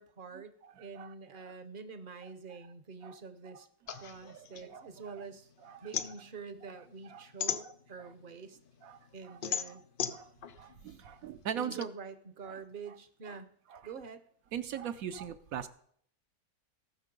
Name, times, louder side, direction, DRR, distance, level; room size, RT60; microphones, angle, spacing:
voice 1, 0.0-3.7 4.0-5.5 5.8-8.6 9.1-9.8 11.6-13.5 13.8-14.3, right 5 dB, 45° right, 12 dB, 0.8 m, -46 dB
voice 2, 0.6-1.1 3.0-3.2 3.9-4.9 5.2-5.3 5.6-5.9 7.1-7.2 7.6-8.1 8.8-9.4 9.7-9.8 10.1-11.9 12.5-12.6 13.3-13.4 13.7-13.8 14.5-15.7, right 9 dB, 70° right, 11 dB, 1.0 m, -41 dB
sound 1, 3.9-5.4 5.7-8.2 8.7-11.8, left 8 dB, 90° left, 0.4 m, -37 dB
17.5 x 6.5 x 5.2 m, 0.65 s
omnidirectional pair, 1.7 m